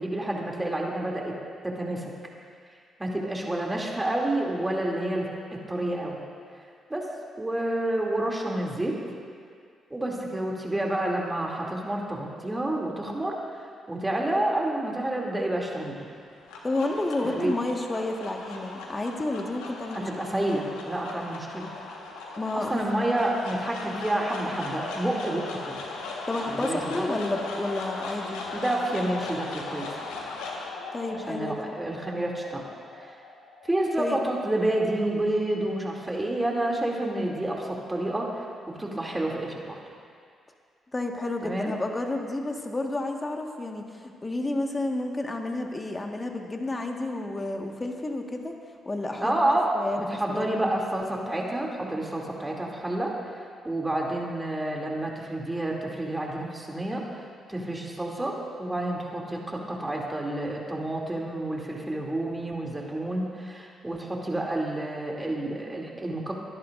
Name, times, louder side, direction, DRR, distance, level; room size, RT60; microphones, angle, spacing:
voice 1, 0.0-1.3 1.6-2.1 3.0-5.3 5.7-6.2 6.9-7.0 7.4-8.9 9.9-13.4 13.9-16.0 17.3-17.5 19.9-21.7 22.5-25.4 26.5-27.1 28.5-29.9 31.3-32.6 33.7-39.7 41.4-41.7 49.1-49.7 50.0-53.1 53.6-57.0 57.5-58.3 58.6-66.3, right 1 dB, 15° right, -2 dB, 2.7 m, -29 dB
sound 1, 16.2-34.5, left 3 dB, 85° left, 1.4 m, -38 dB
voice 2, 16.6-20.1 22.4-22.8 26.3-28.4 30.9-31.7 34.0-34.2 40.9-48.5 48.8-49.3 49.7-50.0 50.3-50.7, left 2 dB, 25° left, 3 dB, 1.6 m, -30 dB
22.5 x 11.0 x 2.6 m, 2.2 s
hypercardioid pair, 50°, 0 cm